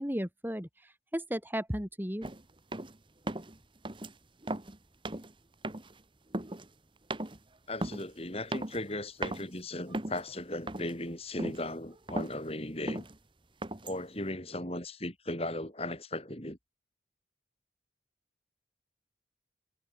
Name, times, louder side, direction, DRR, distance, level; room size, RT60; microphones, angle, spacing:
voice 1, 0.0-2.3, equal, 10° right, 2.9 m, -35 dB
sound 1, 2.2-2.4 2.7-3.0 3.3-3.6 3.8-4.1 4.4-4.8 5.0-5.3 5.6-6.0 6.3-6.7 7.1-7.4 7.8-8.1 8.5-9.0 9.2-9.4 9.9-10.3 10.7-11.0 11.4-11.7 11.9-12.4 12.9-13.2 13.6-14.0, right 1 dB, 25° right, 1.4 m, -37 dB
voice 2, 7.7-13.0 13.8-16.6, left 1 dB, 30° left, 7.7 m, -37 dB
head